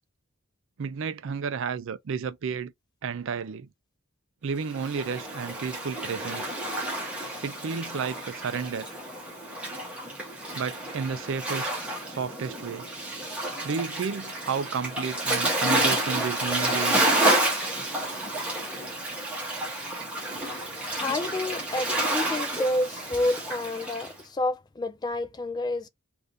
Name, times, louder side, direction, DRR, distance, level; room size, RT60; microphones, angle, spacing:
voice 1, 0.8-2.7 3.0-3.7 4.4-6.6 7.4-8.9 10.5-12.9 13.6-17.2, right 6 dB, 65° right, 0.4 m, -32 dB
Waves surf, 4.7-24.1, right 1 dB, 5° right, 1.1 m, -30 dB
voice 2, 21.0-25.9, left 2 dB, 20° left, 0.3 m, -29 dB
3.4 x 2.6 x 2.6 m
head